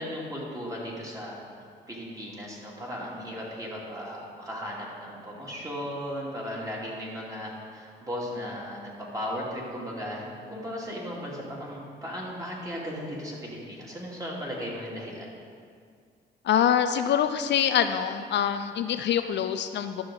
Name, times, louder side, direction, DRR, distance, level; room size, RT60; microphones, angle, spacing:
voice 1, 0.0-1.4 1.9-15.3, equal, 15° right, -4 dB, 2.5 m, -36 dB
voice 2, 16.4-20.0, left 9 dB, 65° left, 9 dB, 0.4 m, -25 dB
11.0 x 6.9 x 3.8 m, 2.1 s
cardioid pair, 90°, 20 cm